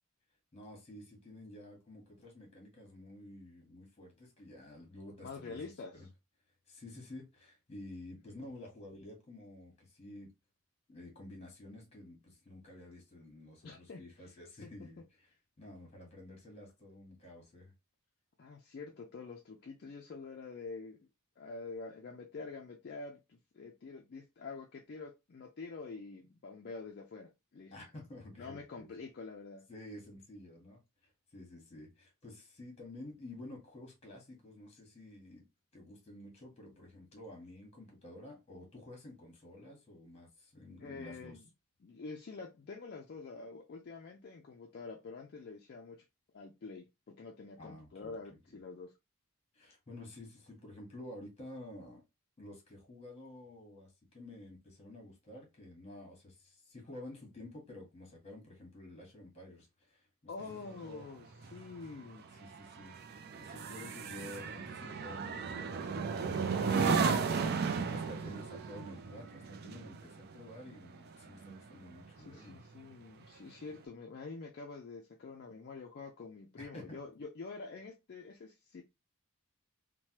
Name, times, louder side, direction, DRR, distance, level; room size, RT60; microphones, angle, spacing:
voice 1, 0.5-5.6 5.9-6.1 6.7-10.3 10.9-17.7 27.7-28.9 29.7-35.5 35.7-41.4 47.6-48.4 49.5-52.0 52.4-60.1 60.4-61.1 62.3-63.0 63.3-67.4 67.8-72.6 76.6-77.0, left 1 dB, 30° left, 1.2 m, -51 dB
voice 2, 5.2-6.0 8.3-8.4 13.6-14.0 14.6-14.9 18.4-21.1 21.4-27.7 28.4-29.7 40.8-41.4 41.8-46.0 46.3-48.9 60.3-61.3 61.5-62.3 67.4-68.2 72.2-78.8, left 4 dB, 50° left, 0.4 m, -47 dB
sound 1, 60.4-72.1 72.5-72.8, right 5 dB, 45° right, 0.4 m, -35 dB
3.1 x 2.1 x 2.8 m
head